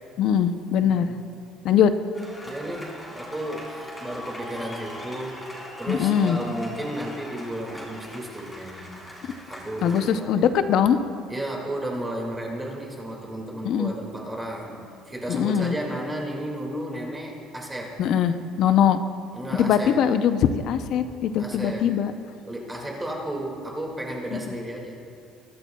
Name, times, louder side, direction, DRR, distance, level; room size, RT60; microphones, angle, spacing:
voice 1, 0.2-1.1 1.6-1.9 5.9-6.4 9.8-11.0 13.6-13.9 15.3-15.8 18.0-19.0 19.5-22.1 24.3-24.4, left 8 dB, 55° left, 10 dB, 0.6 m, -21 dB
voice 2, 0.8-1.2 2.4-8.9 9.2-10.5 11.3-18.0 19.3-20.1 21.4-21.9 22.4-25.0, right 1 dB, 10° right, -1 dB, 2.2 m, -33 dB
sound 1, 2.1-10.1, left 1 dB, 10° left, 3.3 m, -40 dB
22.5 x 13.0 x 2.3 m, 2.4 s
cardioid pair, 150°, 0 cm